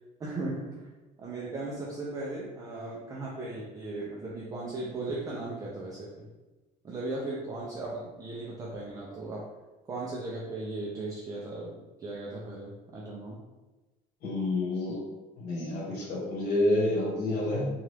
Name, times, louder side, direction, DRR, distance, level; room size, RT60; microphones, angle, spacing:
voice 1, 0.2-0.9 1.2-6.3 6.8-9.5 9.8-13.4, right 2 dB, 20° right, -4 dB, 0.4 m, -37 dB
voice 2, 14.2-15.0 15.4-17.7, left 1 dB, 85° left, -4 dB, 1.1 m, -28 dB
2.8 x 2.3 x 3.2 m, 1.1 s
cardioid pair, 170°, 16 cm